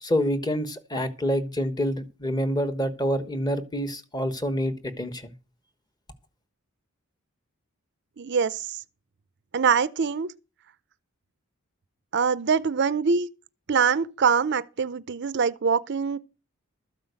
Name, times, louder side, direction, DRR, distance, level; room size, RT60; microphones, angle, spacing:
voice 1, 0.0-5.3, equal, 20° left, 1.2 m, -27 dB
voice 2, 8.2-8.8 9.5-10.3 12.1-13.3 13.7-16.2, right 6 dB, 50° right, 0.5 m, -24 dB
13.0 x 5.6 x 8.0 m
head